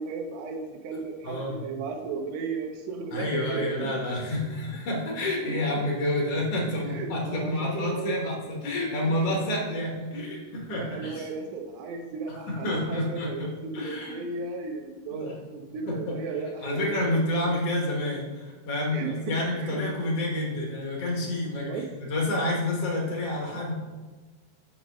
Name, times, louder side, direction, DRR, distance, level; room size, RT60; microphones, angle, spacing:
voice 1, 0.0-3.9 6.8-8.2 9.2-9.3 10.8-17.2 18.9-19.8 21.7-21.9, right 4 dB, 75° right, 3 dB, 2.9 m, -35 dB
voice 2, 1.2-1.6 3.1-11.3 12.3-14.2 15.1-15.3 15.9-16.2 16.6-21.8 22.1-23.7, left 1 dB, 65° left, -2 dB, 1.6 m, -29 dB
6.3 x 5.9 x 6.1 m, 1.3 s
omnidirectional pair, 5.0 m